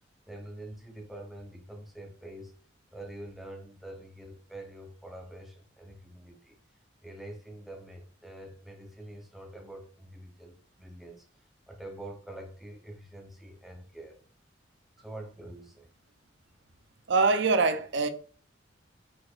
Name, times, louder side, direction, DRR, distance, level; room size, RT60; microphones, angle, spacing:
voice 1, 0.3-2.5 2.9-6.6 7.0-11.2 11.7-14.2 15.0-15.9, right 1 dB, ahead, 0.7 m, -45 dB
voice 2, 17.1-18.1, right 4 dB, 65° right, 0.5 m, -24 dB
4.7 x 4.1 x 2.4 m
head